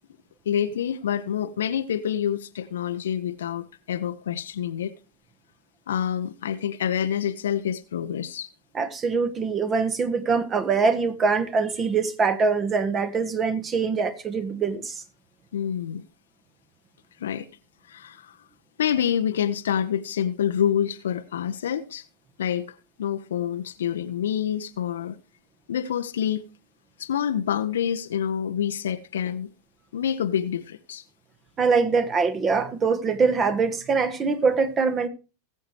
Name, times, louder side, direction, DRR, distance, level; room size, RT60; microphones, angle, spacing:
voice 1, 0.5-4.9 5.9-8.5 15.5-16.0 17.2-17.5 17.9-18.4 18.8-22.0 22.4-25.2 25.7-26.5 27.0-29.5 29.9-31.0, left 9 dB, 65° left, 0.6 m, -27 dB
voice 2, 8.7-15.0 31.6-35.1, right 5 dB, 25° right, 1.2 m, -23 dB
19.5 x 7.8 x 3.2 m
figure-of-eight pair, 90°, 0 cm